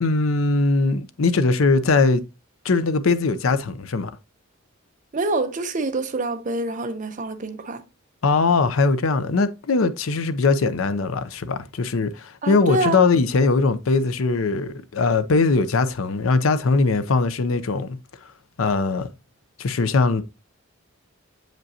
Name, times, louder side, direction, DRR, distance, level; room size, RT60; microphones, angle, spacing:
voice 1, 0.0-2.2 2.6-4.1 8.2-18.0 18.6-19.1 19.6-20.2, left 3 dB, 80° left, 0.6 m, -20 dB
voice 2, 5.1-7.8 12.4-13.0, right 2 dB, 40° right, 0.7 m, -26 dB
7.5 x 5.1 x 2.7 m
head